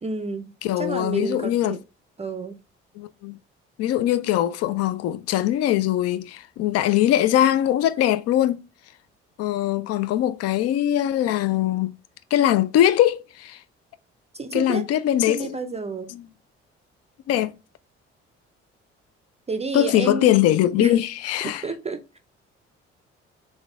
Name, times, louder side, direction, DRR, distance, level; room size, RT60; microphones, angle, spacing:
voice 1, 0.0-1.8 2.2-2.6 14.3-14.9 15.3-16.1 19.5-20.3 20.8-21.0 21.4-22.2, right 3 dB, 20° right, 0.5 m, -30 dB
voice 2, 0.6-1.8 3.0-3.4 3.8-8.6 9.4-11.9 12.3-13.6 14.5-15.6 16.1-16.2 17.3-17.6 19.7-21.6, left 12 dB, 45° left, 0.4 m, -21 dB
3.9 x 3.6 x 3.3 m
figure-of-eight pair, 45°, 34 cm